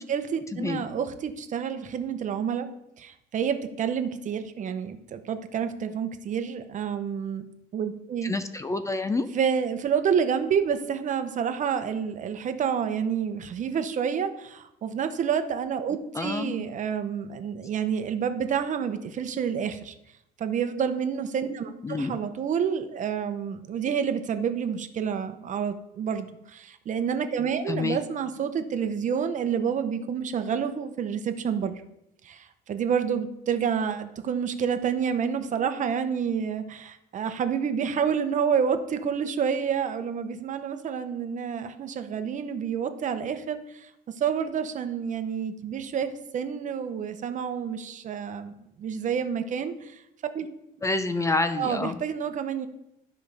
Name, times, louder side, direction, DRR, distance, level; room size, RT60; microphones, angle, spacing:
voice 1, 0.0-2.7 3.0-7.4 7.7-8.3 9.3-19.9 20.4-31.8 32.2-43.9 44.2-48.5 48.8-50.0 50.3-50.5 51.6-52.7, right 7 dB, 50° right, 9 dB, 0.8 m, -29 dB
voice 2, 0.5-0.8 8.2-9.3 16.1-16.7 21.8-22.2 27.7-28.0 50.8-52.0, left 3 dB, 20° left, 10 dB, 0.5 m, -28 dB
12.5 x 5.2 x 3.4 m, 0.83 s
cardioid pair, 110°, 17 cm